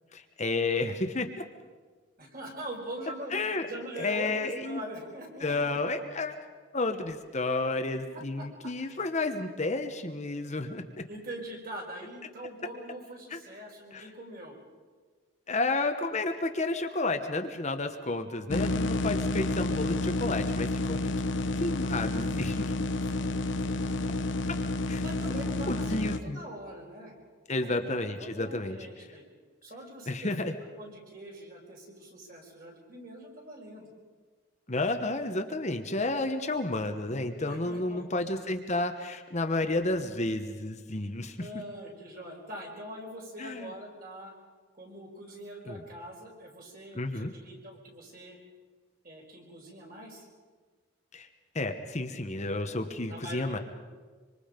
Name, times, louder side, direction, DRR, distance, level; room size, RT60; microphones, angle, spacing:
voice 1, 0.1-1.4 3.3-3.7 4.0-4.8 5.4-6.3 6.7-11.0 13.3-13.4 13.9-14.1 15.5-21.3 21.6-22.7 24.5-24.6 24.9-25.0 25.7-26.4 27.5-29.1 30.1-30.5 34.7-41.5 43.4-43.7 45.6-45.8 46.9-47.3 51.1-51.3 51.5-53.6, left 2 dB, 35° left, 6 dB, 1.1 m, -31 dB
voice 2, 2.2-3.3 3.6-5.8 7.8-8.5 8.8-9.0 11.1-14.6 23.1-24.5 25.0-27.1 27.6-29.2 29.6-30.5 30.8-33.9 37.3-38.3 41.4-44.3 44.8-48.4 49.0-50.2 53.1-53.6, right 1 dB, 45° right, 0 dB, 5.2 m, -43 dB
sound 1, 18.5-26.2, left 2 dB, 60° left, 0.9 m, -30 dB
25.5 x 25.5 x 5.2 m, 1.5 s
head